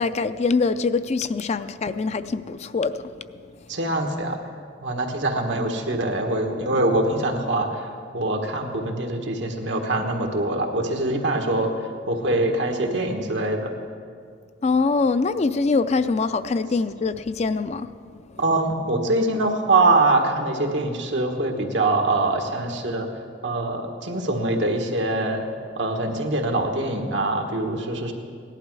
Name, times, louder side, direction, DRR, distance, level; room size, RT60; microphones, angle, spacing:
voice 1, 0.0-3.1 14.6-17.9, left 4 dB, 35° left, 12 dB, 0.4 m, -23 dB
voice 2, 3.7-4.4 4.8-13.7 18.4-23.1 23.4-25.4 25.7-28.1, right 2 dB, 85° right, 3 dB, 1.6 m, -23 dB
17.5 x 11.5 x 4.7 m, 2.2 s
head